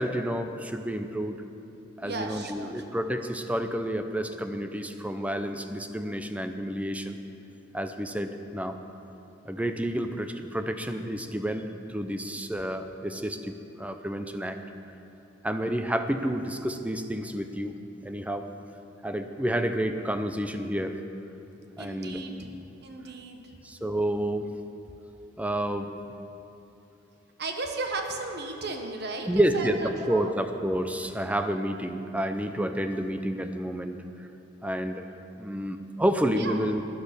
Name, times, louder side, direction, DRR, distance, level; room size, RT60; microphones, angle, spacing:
voice 1, 0.0-1.4 2.0-7.2 7.7-8.8 9.4-14.6 15.4-17.8 18.0-18.5 19.0-21.0 21.8-22.2 23.6-24.5 25.4-25.9 29.3-34.0 34.6-35.1 35.4-36.8, right 1 dB, 5° right, 7 dB, 0.6 m, -29 dB
voice 2, 2.0-2.7 21.8-22.5 22.8-23.4 27.4-30.3 36.4-36.6, right 3 dB, 60° right, 4 dB, 1.2 m, -35 dB
11.0 x 9.9 x 6.8 m, 2.9 s
head